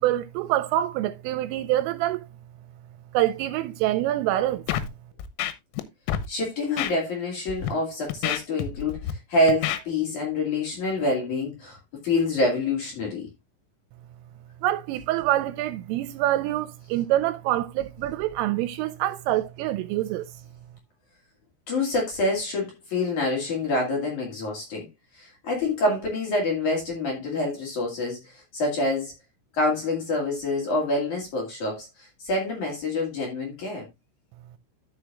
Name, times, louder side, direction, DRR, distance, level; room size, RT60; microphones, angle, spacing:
voice 1, 0.0-2.3 3.1-4.7 14.6-20.3, right 14 dB, 85° right, 3.1 m, -25 dB
Scratching (performance technique), 4.7-4.9 5.2-5.8 6.1-6.3 6.8-6.9 7.5-7.7 8.1-9.1 9.5-9.8, left 11 dB, 90° left, 3.6 m, -28 dB
voice 2, 6.3-11.8 12.0-13.3 21.7-24.9 25.1-29.1 29.5-33.8, left 2 dB, 45° left, 3.1 m, -26 dB
13.0 x 6.4 x 2.4 m
omnidirectional pair, 6.0 m